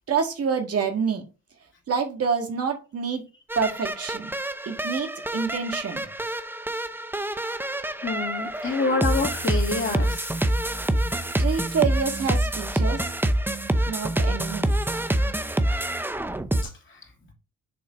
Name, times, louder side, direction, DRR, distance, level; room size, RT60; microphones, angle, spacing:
voice 1, 0.1-1.2 1.9-3.2 3.6-4.3 4.7-6.1 11.4-13.0 13.9-14.7, right 6 dB, 50° right, 4 dB, 1.9 m, -27 dB
sound 1, 3.5-16.6, right 1 dB, 5° right, 0.7 m, -26 dB
voice 2, 8.0-10.3 16.6-16.7, left 3 dB, 40° left, 1 dB, 3.3 m, -27 dB
7.0 x 4.1 x 5.2 m, 0.30 s
cardioid pair, 90°, 30 cm